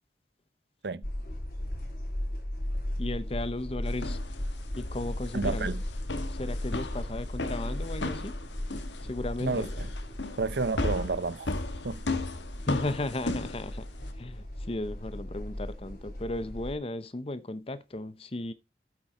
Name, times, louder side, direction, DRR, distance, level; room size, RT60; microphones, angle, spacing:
sound 1, 1.0-16.8, left 1 dB, 55° left, 3.4 m, -37 dB
voice 1, 3.0-4.2 4.8-5.7 6.3-8.4 9.1-9.8 12.7-13.8 14.2-18.5, left 2 dB, 30° left, 0.7 m, -35 dB
sound 2, 3.9-14.1, left 2 dB, 85° left, 1.3 m, -36 dB
voice 2, 5.3-5.8 9.4-9.9 10.4-11.5 11.8-12.0, right 3 dB, 65° right, 0.7 m, -30 dB
8.6 x 7.6 x 4.2 m
head